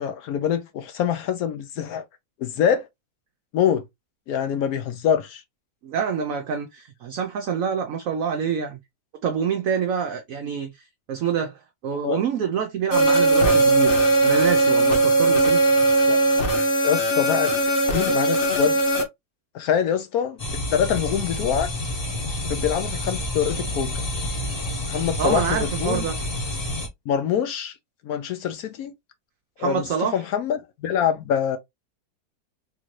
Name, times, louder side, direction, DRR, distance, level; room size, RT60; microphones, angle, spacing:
voice 1, 0.0-2.0 2.4-2.9 3.5-3.8 4.3-5.4 12.0-12.2 16.1-16.2 16.8-17.5 17.9-18.8 19.5-21.7 22.5-24.0 24.8-26.1 27.1-27.7 28.0-28.9 29.6-31.6, left 8 dB, 70° left, 1.0 m, -25 dB
voice 2, 5.8-8.8 9.2-10.7 11.1-15.6 25.2-26.2 29.6-30.2, right 7 dB, 65° right, 0.9 m, -26 dB
sound 1, 12.9-19.0, right 2 dB, 50° left, 1.1 m, -19 dB
sound 2, 20.4-26.9, left 1 dB, 30° left, 0.8 m, -29 dB
3.6 x 2.6 x 3.0 m
omnidirectional pair, 1.8 m